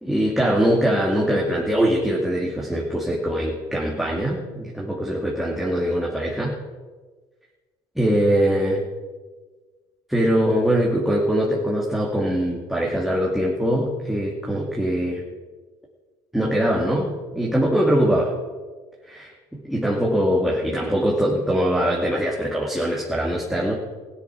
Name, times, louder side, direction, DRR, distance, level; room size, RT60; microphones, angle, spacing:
voice 1, 0.0-6.6 8.0-8.8 10.1-15.2 16.3-18.3 19.1-19.3 19.6-23.7, equal, ahead, -3 dB, 2.5 m, -22 dB
15.5 x 10.0 x 6.2 m, 1.4 s
supercardioid pair, 85°, 13 cm